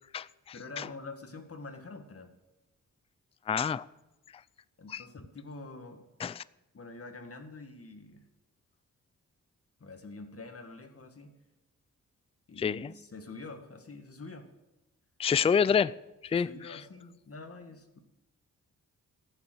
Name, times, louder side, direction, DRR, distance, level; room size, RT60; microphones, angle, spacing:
voice 1, 0.5-2.3 4.8-6.0 6.7-8.2 9.8-11.3 12.5-14.5 16.3-18.0, left 3 dB, 45° left, 1.9 m, -46 dB
voice 2, 3.5-3.8 4.9-5.0 6.2-6.4 12.6-12.9 15.2-15.9 16.2-16.5, left 7 dB, 20° left, 0.3 m, -27 dB
14.0 x 7.1 x 7.9 m
cardioid pair, 75°, 33 cm